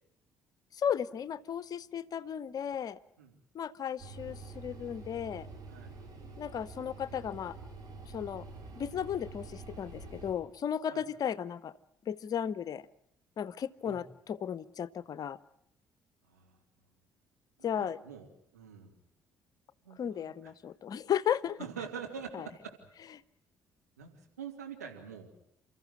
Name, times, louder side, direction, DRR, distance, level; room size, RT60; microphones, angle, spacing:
voice 1, 0.7-3.0 3.5-5.5 6.4-7.6 8.1-8.4 8.8-11.7 12.1-12.9 13.4-15.4 17.6-18.0 20.0-21.6 22.3-22.5, left 9 dB, 45° left, 19 dB, 0.9 m, -35 dB
sound 1, 4.0-10.3, right 3 dB, 50° right, 6.4 m, -47 dB
voice 2, 17.6-18.3 18.5-19.0 19.8-20.3 21.6-22.7 24.0-24.1 24.4-25.3, right 6 dB, 85° right, 1 dB, 2.8 m, -44 dB
29.5 x 14.0 x 9.5 m, 0.76 s
figure-of-eight pair, 45°, 9 cm